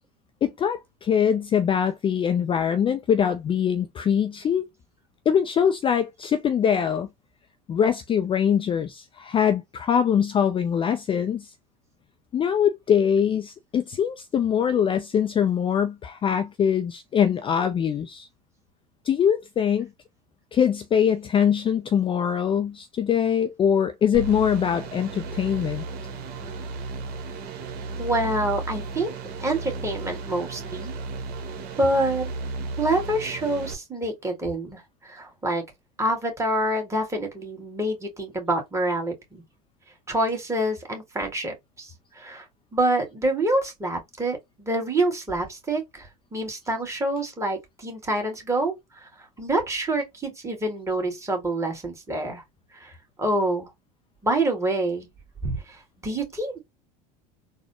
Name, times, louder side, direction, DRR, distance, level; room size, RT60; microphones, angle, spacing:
voice 1, 0.4-4.7 5.3-7.1 7.7-11.5 12.3-18.3 19.1-19.9 20.5-25.8, left 8 dB, 25° left, 0.4 m, -23 dB
sound 1, 24.1-33.7, right 3 dB, 50° right, 1.1 m, -34 dB
voice 2, 28.0-29.1 29.4-30.9 31.8-32.3 32.8-35.6 36.0-39.4 40.1-42.5 42.7-48.7 49.0-52.4 52.7-53.7 54.2-55.1 55.4-56.6, right 1 dB, 15° right, 1.8 m, -27 dB
4.0 x 2.1 x 2.8 m
hypercardioid pair, 80°, 20 cm